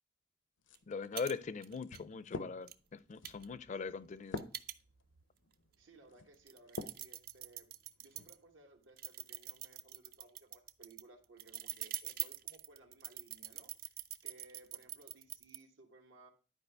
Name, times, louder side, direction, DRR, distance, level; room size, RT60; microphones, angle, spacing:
sound 1, 0.6-7.1 7.6-8.3, left 3 dB, 80° left, 0.6 m, -48 dB
sound 2, 0.7-0.8 1.2-1.3 1.6-2.0 2.7-2.8 3.2-5.2 5.7-5.8 6.3-8.3 9.0-15.6, right 14 dB, 50° right, 0.4 m, -44 dB
voice 1, 0.9-4.4, left 5 dB, 40° left, 0.4 m, -41 dB
voice 2, 5.8-7.7 8.0-13.7 14.2-16.3, right 2 dB, 85° right, 1.3 m, -60 dB
11.0 x 5.0 x 3.4 m
head